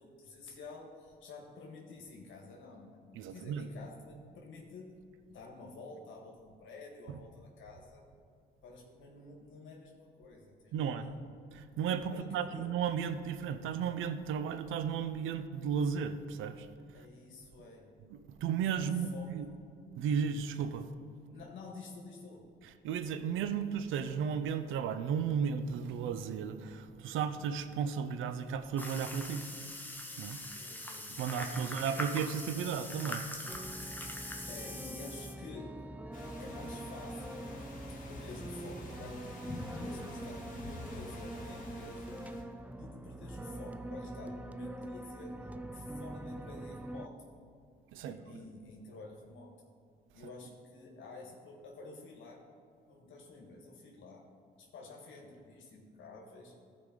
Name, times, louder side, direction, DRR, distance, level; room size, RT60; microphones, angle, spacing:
voice 1, 0.0-3.0 3.3-4.9 5.3-8.0 8.6-11.2 12.1-12.7 16.9-18.0 18.7-19.6 21.3-22.5 30.5-32.1 34.5-35.7 36.4-37.5 37.9-39.4 39.7-42.2 42.7-45.4 45.7-47.2 48.0-49.5 50.1-52.4 52.9-54.3 54.6-56.5, left 3 dB, 75° left, -1 dB, 1.6 m, -50 dB
voice 2, 3.1-3.7 10.7-11.1 11.5-16.7 17.0-17.1 18.1-19.5 19.9-20.9 22.8-29.5 30.2-30.4 31.1-33.2 47.9-48.4, right 7 dB, 85° right, 11 dB, 0.6 m, -34 dB
sound 1, 28.8-35.3, left 1 dB, 10° left, 1.0 m, -43 dB
sound 2, 33.5-47.1, right 1 dB, 10° right, 0.3 m, -44 dB
sound 3, 36.1-42.4, left 2 dB, 45° left, 2.2 m, -48 dB
14.5 x 4.8 x 3.8 m, 2.4 s
cardioid pair, 90°, 20 cm